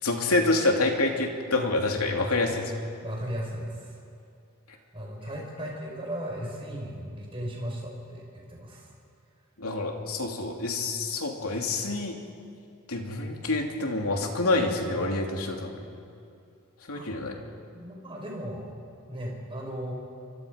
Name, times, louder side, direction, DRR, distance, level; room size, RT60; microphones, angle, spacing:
voice 1, 0.0-2.7 9.6-12.2 12.9-15.7 16.9-17.4, left 2 dB, 80° left, 1 dB, 3.0 m, -27 dB
voice 2, 3.0-4.0 4.9-8.9 16.9-17.2 17.7-18.6 19.1-19.9, equal, 25° right, -1 dB, 5.5 m, -36 dB
28.0 x 24.5 x 5.3 m, 2.6 s
head